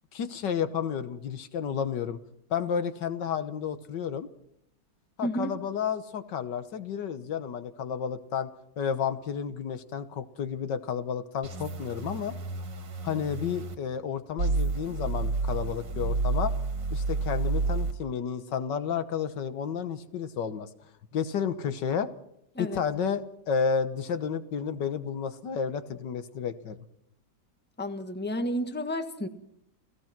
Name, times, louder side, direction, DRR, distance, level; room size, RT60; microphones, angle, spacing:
voice 1, 0.1-2.2 2.5-4.3 5.2-8.5 8.8-12.3 13.0-16.5 16.9-20.7 21.1-22.1 22.6-26.8, left 7 dB, 75° left, 11 dB, 1.7 m, -31 dB
voice 2, 5.2-5.5 22.5-22.8 27.8-29.3, equal, 5° left, 7 dB, 1.3 m, -31 dB
sound 1, 11.4-13.7 14.4-17.9, right 3 dB, 90° right, 2.8 m, -30 dB
30.0 x 16.0 x 6.0 m, 0.76 s
omnidirectional pair, 1.9 m